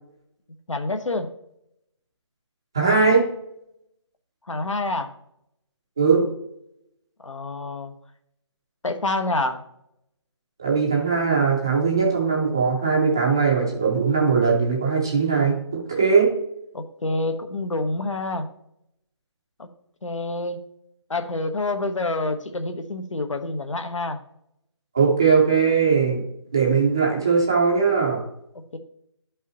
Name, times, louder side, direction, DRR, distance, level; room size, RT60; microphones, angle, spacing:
voice 1, 0.7-1.3 4.5-5.1 7.2-7.9 8.8-9.6 16.7-18.5 19.6-19.7 20.0-20.6 21.1-24.2 28.7-28.8, left 2 dB, 90° left, 7 dB, 1.2 m, -27 dB
voice 2, 2.7-3.3 6.0-6.2 10.6-15.6 15.9-16.3 24.9-26.2 26.5-28.2, right 5 dB, 10° right, -3 dB, 0.5 m, -20 dB
11.0 x 5.5 x 2.9 m, 0.77 s
figure-of-eight pair, 170°, 16 cm